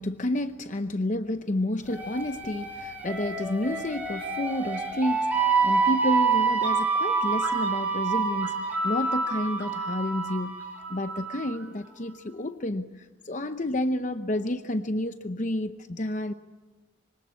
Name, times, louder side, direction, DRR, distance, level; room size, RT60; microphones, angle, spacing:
voice 1, 0.0-16.3, left 1 dB, 40° left, 9 dB, 0.8 m, -30 dB
sound 1, 1.9-11.5, right 4 dB, 10° right, 6.0 m, -27 dB
25.5 x 24.5 x 8.5 m, 1.2 s
head